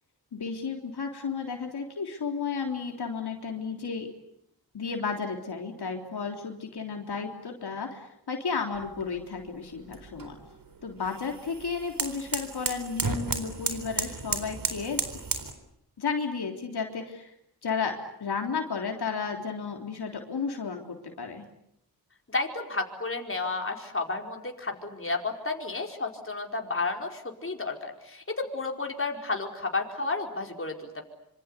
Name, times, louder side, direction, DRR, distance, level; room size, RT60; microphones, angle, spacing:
voice 1, 0.3-4.1 4.7-10.4 10.8-15.2 16.0-17.3 17.6-17.9 18.2-21.5, left 5 dB, 80° left, 3 dB, 3.6 m, -33 dB
sound 1, 8.7-15.5, right 4 dB, 60° right, 4.1 m, -34 dB
voice 2, 22.3-31.1, left 3 dB, 35° left, 2 dB, 4.8 m, -32 dB
26.5 x 26.0 x 8.3 m, 0.75 s
wide cardioid pair, 70°, 39 cm